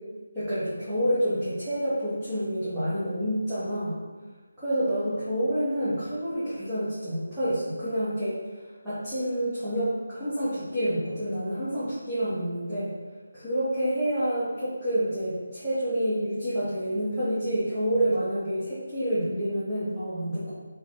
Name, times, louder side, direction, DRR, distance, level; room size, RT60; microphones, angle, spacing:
voice 1, 0.3-4.0 4.6-8.3 8.8-12.9 13.3-20.5, equal, 5° right, -19 dB, 0.9 m, -28 dB
4.5 x 3.0 x 3.6 m, 1.4 s
figure-of-eight pair, 175°, 0 cm